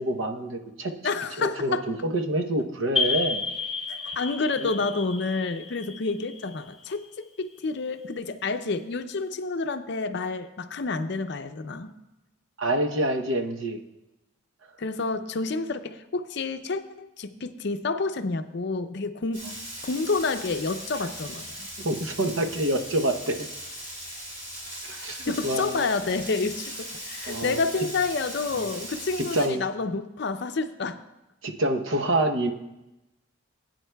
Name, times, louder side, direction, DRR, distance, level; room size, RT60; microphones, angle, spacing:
voice 1, 0.0-0.9 1.4-3.4 4.6-4.7 12.6-13.8 21.8-23.5 24.8-25.9 27.3-27.6 29.2-29.7 31.4-32.5, right 1 dB, 75° right, 5 dB, 0.8 m, -27 dB
voice 2, 1.0-1.8 3.9-11.9 14.8-19.4 19.8-21.7 25.3-31.0, left 3 dB, 55° left, 9 dB, 0.5 m, -29 dB
sound 1, 3.0-7.4, left 4 dB, ahead, 2.3 m, -31 dB
Frying (food), 19.3-29.5, equal, 35° right, 4.0 m, -39 dB
18.5 x 9.2 x 2.3 m, 0.96 s
head